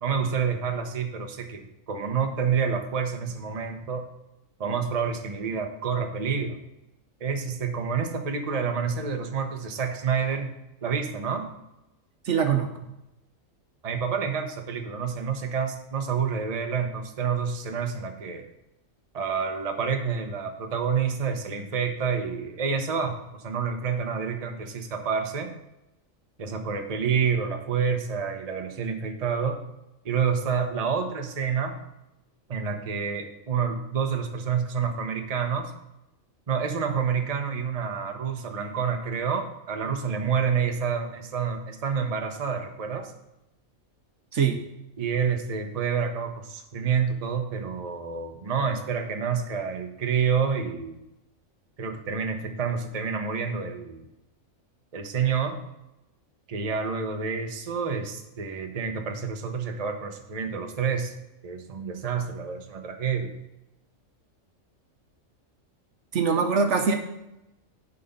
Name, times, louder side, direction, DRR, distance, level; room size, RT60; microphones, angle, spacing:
voice 1, 0.0-4.1 4.6-6.6 7.2-10.5 10.8-11.5 13.8-18.5 19.1-25.5 26.4-29.6 30.0-31.8 32.5-35.7 36.5-43.1 45.0-51.0 51.8-54.1 54.9-55.6 56.5-61.1 61.4-63.3, right 6 dB, 35° right, 4 dB, 0.8 m, -28 dB
voice 2, 12.3-12.7 44.3-44.6 66.1-67.0, right 6 dB, 65° right, 6 dB, 1.1 m, -22 dB
11.0 x 4.1 x 5.3 m, 0.90 s
omnidirectional pair, 1.4 m